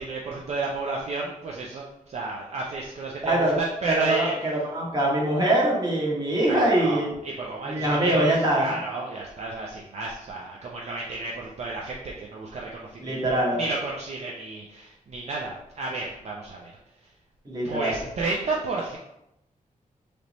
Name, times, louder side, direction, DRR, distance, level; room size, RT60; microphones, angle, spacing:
voice 1, 0.0-4.3 6.5-13.2 13.5-16.7 17.6-19.0, right 3 dB, 50° right, -2 dB, 0.5 m, -32 dB
voice 2, 3.2-3.5 3.8-7.1 7.6-8.7 13.0-13.6 17.4-18.0, right 1 dB, 30° right, -3 dB, 1.1 m, -23 dB
3.4 x 3.0 x 4.0 m, 0.84 s
wide cardioid pair, 165°, 14 cm